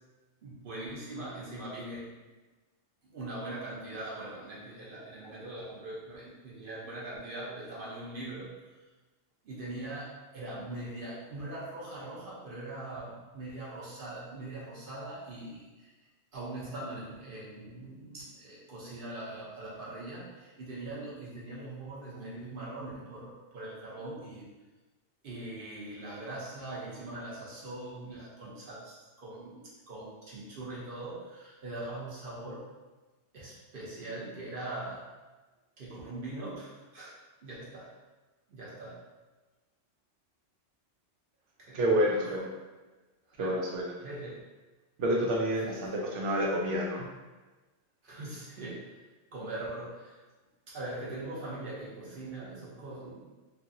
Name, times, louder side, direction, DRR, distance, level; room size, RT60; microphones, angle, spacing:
voice 1, 0.4-2.1 3.0-8.8 9.4-15.9 16.3-24.5 25.2-32.6 33.3-35.1 35.8-37.1 37.4-37.9 38.5-39.0 41.6-42.4 43.4-43.6 44.0-44.4 45.6-46.0 48.0-49.0 49.3-50.2 50.7-53.2, right 2 dB, 55° right, -6 dB, 0.8 m, -41 dB
voice 2, 41.7-42.5 43.4-43.8 45.0-47.0, equal, 90° right, -2 dB, 1.0 m, -28 dB
2.8 x 2.5 x 2.6 m, 1.2 s
omnidirectional pair, 1.2 m